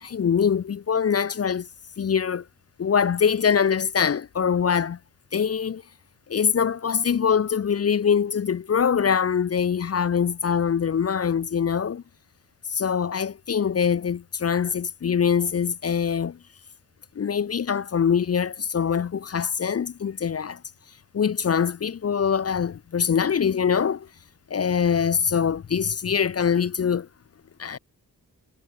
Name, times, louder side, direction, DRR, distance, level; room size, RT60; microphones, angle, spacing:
voice 1, 0.0-1.7 2.0-2.4 2.8-5.0 5.3-5.8 6.3-12.0 12.7-16.4 17.2-20.6 21.1-24.1 24.5-27.1 27.6-27.8, left 7 dB, 40° left, 0.6 m, -23 dB
wide cardioid pair, 95°, 39 cm